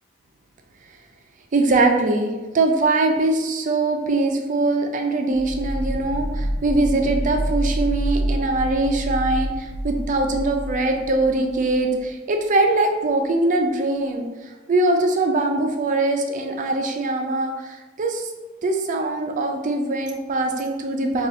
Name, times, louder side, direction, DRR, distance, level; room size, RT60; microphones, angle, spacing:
voice 1, 1.5-2.3 2.5-18.3 18.6-21.3, right 2 dB, 40° right, 4 dB, 0.4 m, -22 dB
sound 1, 5.3-12.1, right 1 dB, 40° left, 0.4 m, -27 dB
2.6 x 2.3 x 3.8 m, 1.2 s
head